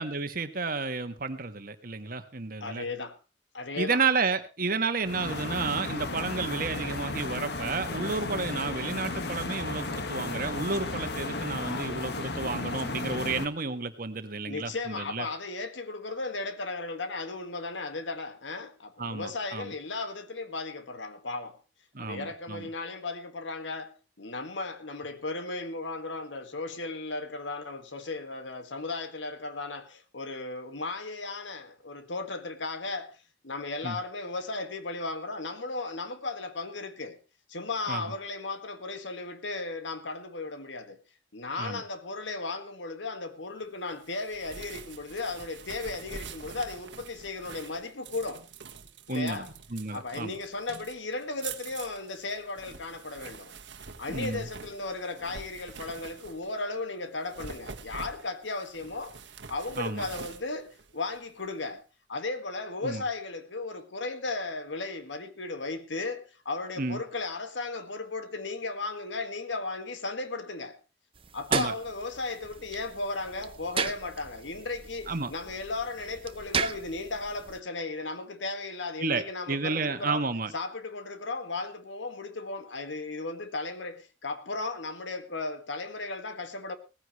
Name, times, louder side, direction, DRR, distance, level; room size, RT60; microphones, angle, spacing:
voice 1, 0.0-2.9 3.8-15.3 19.0-19.7 21.9-22.7 33.8-34.0 37.9-38.0 41.6-41.8 49.1-50.3 54.1-54.5 59.8-60.0 62.8-63.0 66.8-67.0 71.5-71.7 75.1-75.3 79.0-80.5, right 4 dB, 50° right, 1.4 m, -31 dB
voice 2, 2.6-3.2 3.5-4.0 11.5-12.0 14.4-21.6 22.0-33.2 33.4-37.2 37.5-41.0 41.3-48.4 49.1-49.5 49.9-53.5 54.0-59.2 59.5-61.8 62.1-70.8 71.3-80.3 80.5-86.8, left 3 dB, 80° left, 1.8 m, -35 dB
sound 1, 5.0-13.5, left 2 dB, 60° left, 1.6 m, -34 dB
sound 2, 44.0-56.6 57.2-61.5, right 5 dB, 75° right, 1.4 m, -45 dB
sound 3, 71.2-77.6, right 6 dB, 30° right, 0.7 m, -36 dB
18.0 x 15.0 x 3.1 m
head